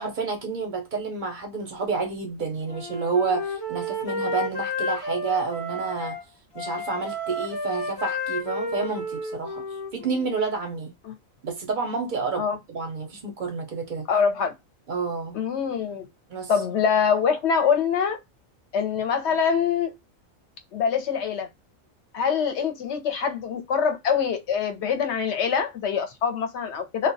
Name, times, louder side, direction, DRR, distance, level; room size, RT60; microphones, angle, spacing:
voice 1, 0.0-6.2 6.5-9.6 9.9-10.9 11.4-14.1 14.9-15.4 16.3-16.5, right 4 dB, 55° right, 0.5 m, -29 dB
Wind instrument woodwind instrument, 2.7-6.2 6.5-10.3, left 1 dB, 40° left, 0.3 m, -31 dB
voice 2, 14.1-14.5 15.3-16.1 16.5-18.2 18.7-20.0 20.7-21.5 22.1-27.1, left 6 dB, 65° left, 0.8 m, -24 dB
2.3 x 2.1 x 2.6 m
omnidirectional pair, 1.4 m